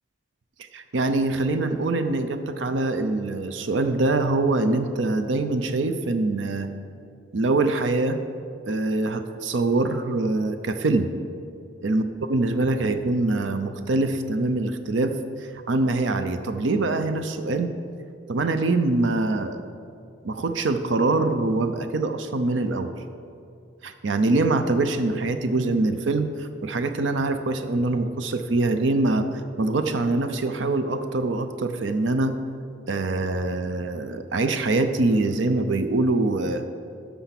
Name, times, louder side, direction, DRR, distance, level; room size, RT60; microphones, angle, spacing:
voice 1, 0.6-6.7 7.3-8.2 8.7-11.1 11.8-17.7 18.3-19.6 20.2-22.9 23.8-29.3 29.6-32.3 32.9-36.6, right 2 dB, 80° right, 9 dB, 0.6 m, -24 dB
12.5 x 7.0 x 5.9 m, 2.5 s
head